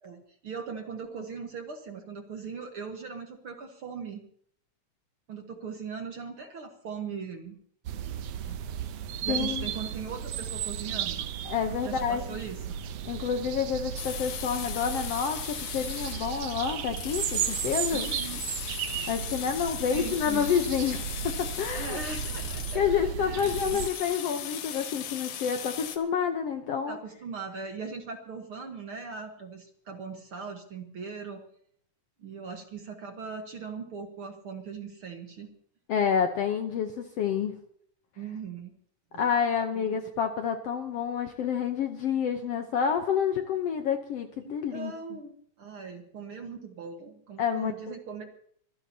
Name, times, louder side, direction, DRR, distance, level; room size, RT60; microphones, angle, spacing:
voice 1, 0.0-4.2 5.3-7.6 8.5-8.6 9.2-11.3 11.8-12.6 17.9-18.4 19.8-20.5 21.7-23.8 26.9-31.4 32.2-35.5 38.2-38.7 39.1-39.2 39.7-40.1 44.4-48.2, right 5 dB, 55° right, 4 dB, 1.8 m, -40 dB
sound 1, 7.8-23.9, right 9 dB, 85° right, 1.3 m, -35 dB
voice 2, 9.3-9.6 11.4-12.2 13.0-18.1 19.1-21.3 21.6-22.0 22.7-27.0 35.9-37.5 39.2-44.9 47.4-47.7, left 7 dB, 65° left, 6 dB, 1.6 m, -28 dB
sound 2, 14.0-26.0, left 9 dB, 85° left, 2.9 m, -38 dB
25.0 x 15.5 x 2.8 m, 0.62 s
omnidirectional pair, 3.7 m